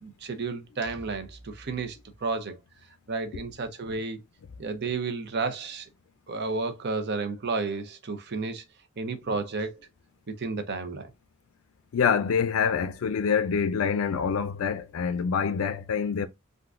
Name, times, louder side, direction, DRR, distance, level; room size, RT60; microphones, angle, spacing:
voice 1, 0.0-2.6 3.1-4.2 4.6-5.9 6.3-8.6 9.0-9.7 10.4-11.1, right 4 dB, 50° right, 0.6 m, -32 dB
voice 2, 11.9-16.3, left 6 dB, 75° left, 0.4 m, -26 dB
3.6 x 2.5 x 2.4 m
head